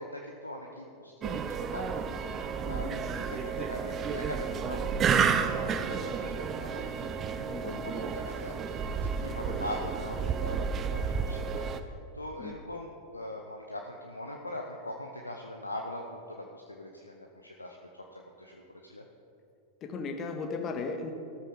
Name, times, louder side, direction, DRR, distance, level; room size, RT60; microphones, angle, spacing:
voice 1, 0.0-2.3 2.7-19.0, left 1 dB, 80° left, 1 dB, 1.1 m, -42 dB
sound 1, 1.2-11.8, right 6 dB, 25° right, 0.8 m, -31 dB
voice 2, 2.6-3.0 7.5-7.8 12.4-12.5 19.8-21.1, left 4 dB, 30° left, 4 dB, 1.9 m, -36 dB
14.5 x 13.0 x 5.3 m, 2.6 s
figure-of-eight pair, 90°, 0 cm